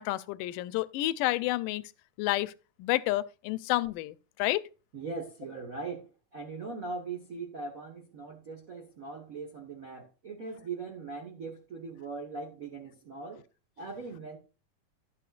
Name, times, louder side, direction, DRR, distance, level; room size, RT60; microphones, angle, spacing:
voice 1, 0.0-1.9 2.2-2.5 2.8-4.6, left 17 dB, 85° left, 2.2 m, -30 dB
voice 2, 4.9-13.4 13.8-14.4, right 4 dB, 70° right, 0.8 m, -40 dB
12.0 x 8.4 x 2.4 m
omnidirectional pair, 3.7 m